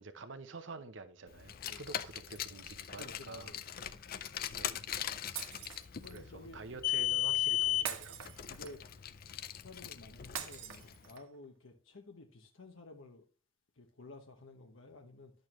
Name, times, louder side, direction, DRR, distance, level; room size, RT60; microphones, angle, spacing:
voice 1, 0.0-3.6 4.0-4.2 4.5-5.1 6.0-8.4, right 3 dB, 65° right, 0.7 m, -49 dB
Car, 1.4-10.9, left 13 dB, 50° left, 0.5 m, -37 dB
voice 2, 3.0-3.7 6.0-6.8 8.5-8.9 9.5-13.3 13.8-15.3, left 2 dB, 85° left, 1.0 m, -53 dB
Shatter, 5.4-6.2 7.8-8.9 10.4-11.4, right 8 dB, 90° right, 1.2 m, -43 dB
11.0 x 6.5 x 3.0 m
head